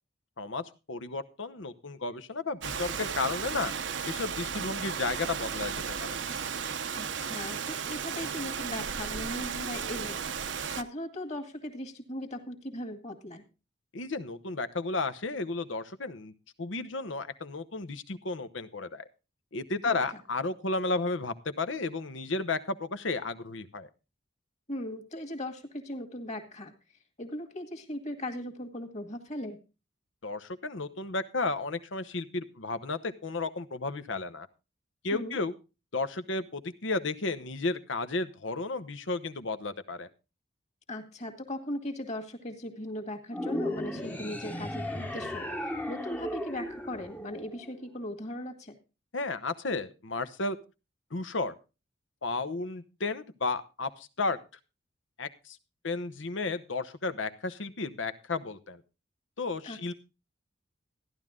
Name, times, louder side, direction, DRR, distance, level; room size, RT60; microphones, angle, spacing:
voice 1, 0.4-3.7 4.1-6.2 13.9-16.3 16.6-19.1 19.5-23.9 30.2-34.5 35.0-35.5 35.9-40.1 49.1-50.6 51.1-51.6 52.2-54.4 55.2-55.6 55.8-58.8 59.4-59.9, left 3 dB, 80° left, 11 dB, 1.0 m, -33 dB
Rain, 2.6-10.8, right 6 dB, 70° right, 0.8 m, -34 dB
voice 2, 6.9-13.4 19.8-20.0 24.7-26.7 27.2-29.6 35.1-35.4 40.9-48.8 59.6-59.9, left 1 dB, 35° left, 7 dB, 2.0 m, -38 dB
sound 1, 43.3-47.8, left 1 dB, 10° left, 0.9 m, -36 dB
14.0 x 11.0 x 3.7 m, 0.30 s
head